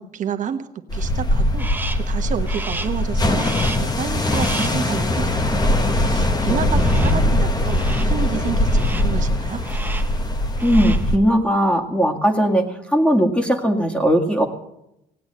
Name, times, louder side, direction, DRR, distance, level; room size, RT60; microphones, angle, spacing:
voice 1, 0.0-1.7 1.9-3.5 3.8-5.6 5.9-9.6, right 7 dB, 50° right, 7 dB, 1.2 m, -29 dB
sound 1, 0.9-11.2, left 1 dB, 25° left, 1.3 m, -21 dB
Crow, 1.6-2.1 2.5-3.0 3.4-4.0 4.3-4.9 6.8-7.3 7.7-8.2 8.7-9.2 9.6-10.2 10.5-11.1, right 3 dB, 10° right, 1.0 m, -33 dB
voice 2, 4.3-5.5 6.4-7.3 10.6-14.5, equal, 5° left, 3 dB, 1.9 m, -20 dB
18.0 x 8.7 x 7.6 m, 0.83 s
cardioid pair, 110°, 17 cm